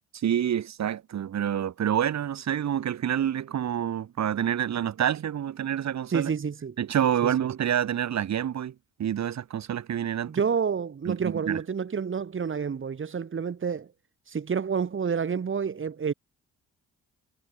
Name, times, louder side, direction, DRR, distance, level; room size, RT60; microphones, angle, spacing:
voice 1, 0.2-6.3 6.8-8.7 9.0-10.3 11.1-11.6, right 9 dB, 65° right, 6.8 m, -27 dB
voice 2, 6.1-6.7 7.2-7.3 10.3-13.9 14.3-16.1, right 6 dB, 40° right, 5.2 m, -29 dB
cardioid pair, 90°, 30 cm